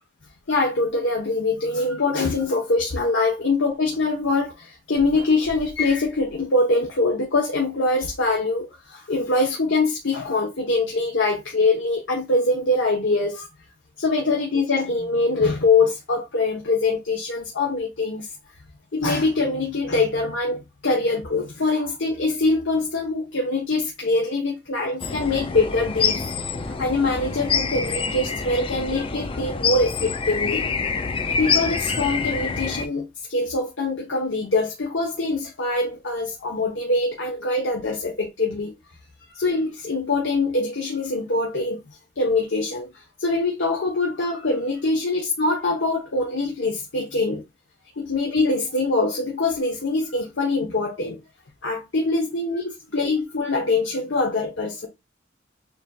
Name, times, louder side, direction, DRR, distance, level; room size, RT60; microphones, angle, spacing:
voice 1, 0.5-13.5 14.0-18.3 18.9-26.2 26.6-30.7 31.4-38.7 39.3-41.8 42.2-47.4 48.0-51.2 51.6-54.9, left 3 dB, 90° left, 1.0 m, -23 dB
sound 1, 25.0-32.9, left 5 dB, 30° left, 0.4 m, -26 dB
6.9 x 2.7 x 2.3 m
head